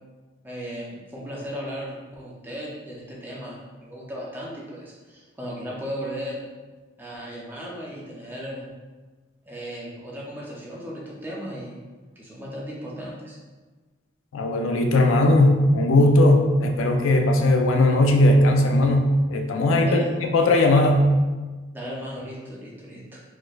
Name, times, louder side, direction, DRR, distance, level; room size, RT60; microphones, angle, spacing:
voice 1, 0.4-6.4 7.0-8.7 9.5-11.8 12.2-13.4 19.8-20.1 21.7-23.2, equal, 10° right, -5 dB, 0.6 m, -36 dB
voice 2, 14.3-21.1, left 1 dB, 90° left, 4 dB, 0.4 m, -18 dB
4.2 x 3.1 x 2.4 m, 1.3 s
head